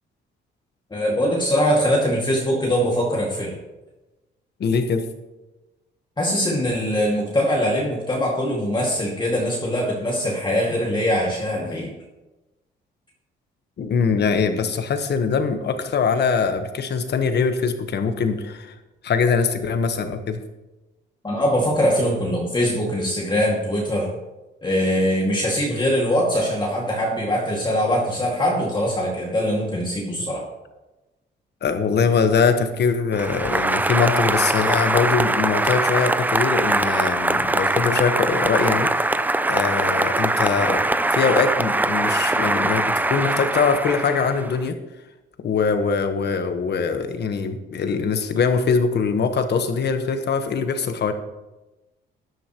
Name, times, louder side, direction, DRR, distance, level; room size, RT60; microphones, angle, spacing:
voice 1, 0.9-3.6 6.2-11.9 21.2-24.1 24.6-30.5, equal, 25° left, -3 dB, 2.2 m, -22 dB
voice 2, 4.6-5.0 13.8-18.7 19.0-20.4 31.6-39.2 39.5-44.8 45.4-51.1, left 5 dB, 60° left, 7 dB, 1.3 m, -22 dB
Applause, 33.1-44.6, right 2 dB, 10° right, 0.4 m, -22 dB
14.0 x 11.0 x 3.1 m, 1.1 s
cardioid pair, 90°, 20 cm